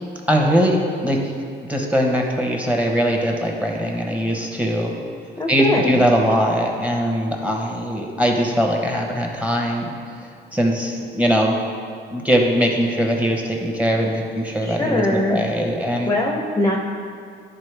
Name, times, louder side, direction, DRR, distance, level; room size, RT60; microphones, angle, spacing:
voice 1, 0.3-1.2 1.6-4.9 5.5-9.9 10.5-11.5 12.1-16.1, equal, 5° right, 1 dB, 1.1 m, -21 dB
voice 2, 5.4-6.0 14.6-15.4 16.1-16.8, left 1 dB, 15° left, -1 dB, 0.7 m, -21 dB
10.5 x 4.0 x 3.4 m, 2.2 s
cardioid pair, 90°, 20 cm